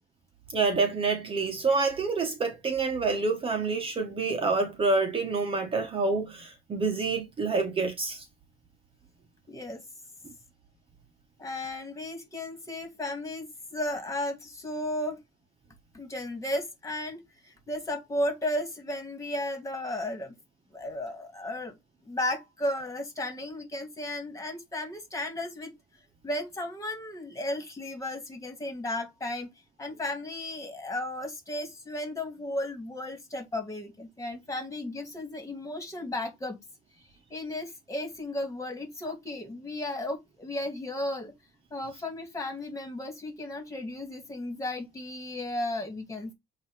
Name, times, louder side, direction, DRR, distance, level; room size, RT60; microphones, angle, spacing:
voice 1, 0.5-8.2, right 4 dB, 30° right, 1.3 m, -27 dB
voice 2, 9.5-9.8 11.4-15.2 15.9-20.3 20.7-21.7 22.0-25.7 26.2-29.5 29.8-36.6 37.3-41.3 41.7-46.3, left 1 dB, 20° left, 2.5 m, -34 dB
7.9 x 2.9 x 5.0 m
cardioid pair, 110°, 17 cm